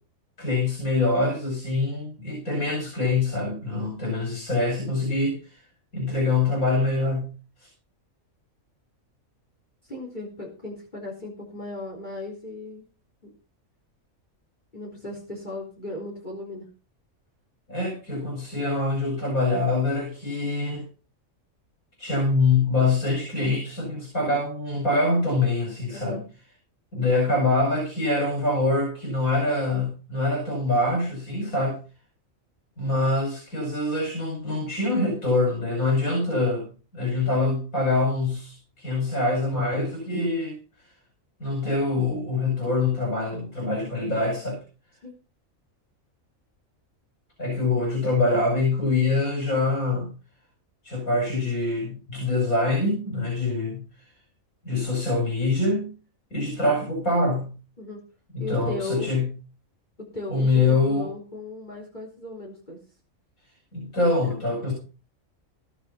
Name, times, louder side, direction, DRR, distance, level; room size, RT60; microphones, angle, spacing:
voice 1, 0.4-5.6 5.9-7.3 7.6-7.7 17.7-20.8 22.0-26.2 26.9-31.8 32.8-36.7 36.9-40.6 41.4-44.6 47.4-50.1 50.8-53.8 54.6-55.9 56.3-57.6 58.3-59.3 60.3-61.1 63.7-64.7, left 2 dB, 80° left, 0 dB, 6.3 m, -24 dB
voice 2, 9.8-12.8 13.2-13.3 14.7-16.7 25.9-26.2 45.0-45.1 57.8-58.0 58.4-59.1 60.0-62.8 64.2-64.3 64.6-64.7, left 2 dB, 35° left, -1 dB, 3.9 m, -36 dB
17.5 x 7.0 x 5.6 m, 0.35 s
omnidirectional pair, 1.4 m